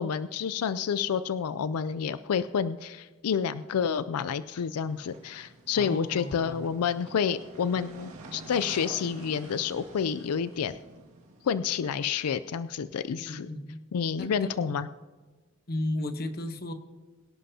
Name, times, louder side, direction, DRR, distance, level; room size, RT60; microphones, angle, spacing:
voice 1, 0.0-10.8 11.4-13.5 13.9-14.9, left 7 dB, 90° left, 14 dB, 0.4 m, -29 dB
sound 1, 4.8-11.8, right 2 dB, 80° right, 2.0 m, -48 dB
voice 2, 5.8-6.6 13.3-13.8 14.2-14.8 15.7-16.7, left 1 dB, 45° left, 7 dB, 1.0 m, -34 dB
23.0 x 11.5 x 2.8 m, 1.3 s
head